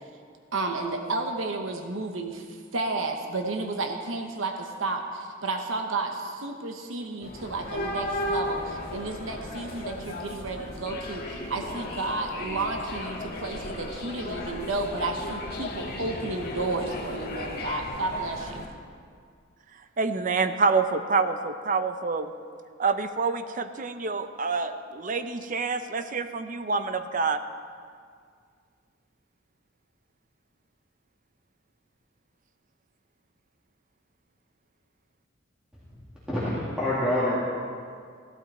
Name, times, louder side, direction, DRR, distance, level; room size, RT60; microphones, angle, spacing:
voice 1, 0.5-2.4 2.7-18.6, right 3 dB, 80° right, 4 dB, 1.0 m, -32 dB
sound 1, 7.2-18.7, left 1 dB, 50° left, 1.7 m, -35 dB
voice 2, 20.0-22.3 22.8-27.4, right 4 dB, 40° right, 10 dB, 0.6 m, -27 dB
voice 3, 36.3-37.4, left 1 dB, 5° right, -10 dB, 2.3 m, -26 dB
15.5 x 12.0 x 4.2 m, 2.1 s
head